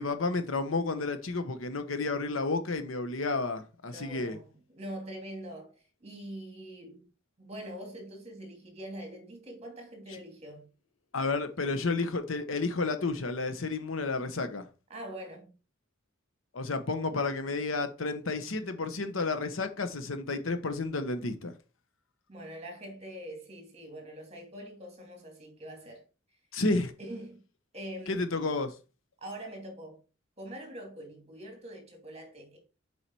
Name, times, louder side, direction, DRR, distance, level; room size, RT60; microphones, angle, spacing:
voice 1, 0.0-4.4 11.1-14.6 16.5-21.5 26.5-26.9 28.1-28.7, left 3 dB, 90° left, 1.1 m, -31 dB
voice 2, 3.9-7.1 7.4-10.7 14.9-15.5 22.3-26.1 27.0-27.4 27.7-28.2 29.2-30.0 30.4-32.6, right 1 dB, 30° right, 2.6 m, -44 dB
7.1 x 4.8 x 4.6 m
head